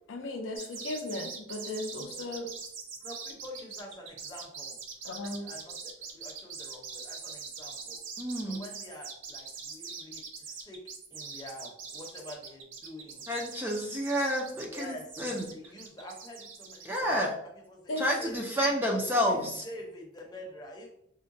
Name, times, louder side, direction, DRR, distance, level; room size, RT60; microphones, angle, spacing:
voice 1, 0.1-2.5 5.0-5.5 17.9-18.1, left 2 dB, 65° left, 5 dB, 0.4 m, -36 dB
sound 1, 0.6-17.0, right 5 dB, 65° right, 0.5 m, -43 dB
voice 2, 3.0-4.8 5.4-8.0 8.5-13.2 14.6-17.1 17.7-18.5 19.0-20.9, left 1 dB, 20° left, -1 dB, 0.7 m, -47 dB
voice 3, 8.2-8.6 13.3-15.5 16.9-17.4 18.0-19.7, equal, 10° right, -1 dB, 0.4 m, -29 dB
3.8 x 2.1 x 2.6 m, 0.70 s
head